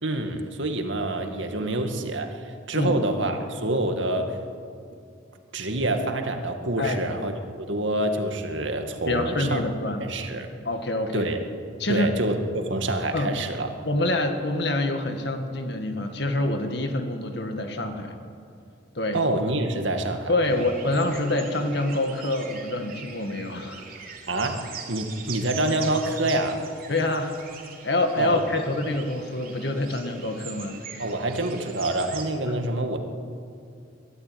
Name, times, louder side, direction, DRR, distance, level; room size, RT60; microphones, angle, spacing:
voice 1, 0.0-4.4 5.5-9.6 10.0-10.5 11.1-11.4 11.9-13.7 19.1-20.6 24.3-26.6 28.2-28.6 31.0-33.0, right 1 dB, 75° right, 5 dB, 2.1 m, -27 dB
voice 2, 9.1-10.0 10.6-11.3 11.8-12.1 13.1-13.3 13.9-18.1 19.0-19.2 20.3-23.8 26.9-27.3 27.8-30.8 32.5-32.6, left 2 dB, 60° left, 5 dB, 1.9 m, -26 dB
sound 1, 20.4-32.2, right 6 dB, 50° right, 3.1 m, -41 dB
23.0 x 13.0 x 9.4 m, 2.4 s
head